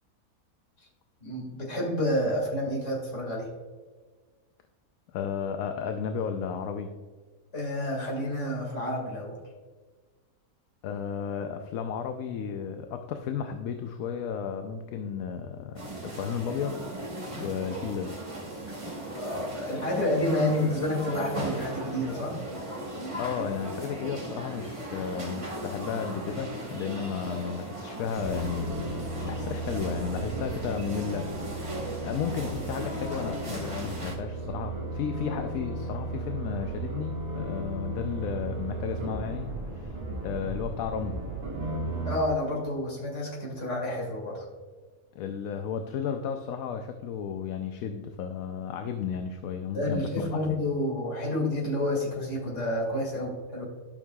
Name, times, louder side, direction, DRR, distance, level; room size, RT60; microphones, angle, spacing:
voice 1, 1.2-3.5 7.5-9.4 18.7-18.8 19.2-22.4 42.1-44.5 49.7-53.7, left 1 dB, 50° left, -2 dB, 2.5 m, -29 dB
voice 2, 5.1-6.9 10.8-16.8 17.4-18.2 23.2-28.8 29.2-31.3 32.0-40.0 40.2-41.2 45.1-50.6, left 7 dB, 70° left, 6 dB, 1.0 m, -33 dB
sound 1, 15.8-34.2, right 1 dB, 25° right, 1.2 m, -37 dB
sound 2, 28.1-42.2, right 2 dB, 50° right, 2.8 m, -35 dB
12.0 x 6.3 x 2.3 m, 1.4 s
omnidirectional pair, 1.6 m